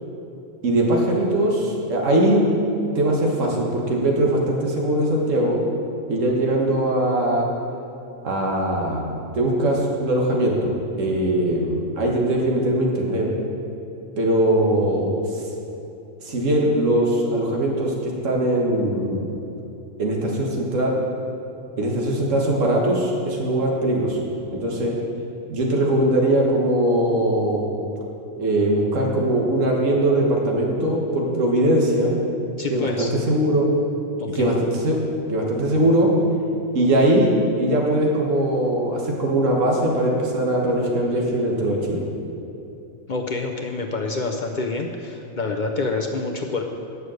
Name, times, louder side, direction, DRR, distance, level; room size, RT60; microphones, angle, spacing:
voice 1, 0.6-2.5 2.9-5.6 6.1-7.5 8.2-13.3 14.2-15.4 16.2-19.3 20.0-21.0 21.8-24.2 24.5-24.9 25.5-27.6 28.3-32.1 32.7-33.7 34.3-35.0 35.3-36.1 36.7-42.0, right 1 dB, 70° right, -1 dB, 1.7 m, -21 dB
voice 2, 32.6-33.1 34.2-34.5 43.1-46.6, left 3 dB, 50° left, 2 dB, 0.6 m, -27 dB
9.7 x 6.6 x 6.3 m, 2.8 s
omnidirectional pair, 1.4 m